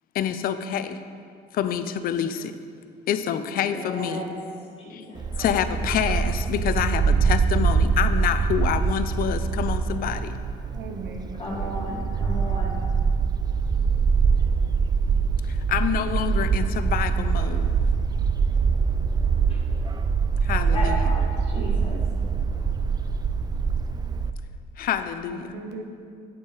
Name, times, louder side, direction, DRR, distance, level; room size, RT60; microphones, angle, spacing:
voice 1, 0.1-1.0 1.5-2.6 3.1-4.2 4.9-5.0 5.4-10.4 15.4-17.7 20.4-21.1 24.8-25.5, left 9 dB, 60° left, 11 dB, 0.5 m, -27 dB
voice 2, 3.6-4.3 4.8-5.2 11.3-12.8 19.5-19.6 20.7-22.0, left 1 dB, 35° left, -4 dB, 1.6 m, -34 dB
Bark, 5.2-24.3, right 5 dB, 25° right, 0.4 m, -24 dB
voice 3, 10.7-12.2 21.6-22.1 25.3-25.8, right 3 dB, 85° right, 4 dB, 1.0 m, -38 dB
8.7 x 8.3 x 4.0 m, 2.3 s
cardioid pair, 110°, 17 cm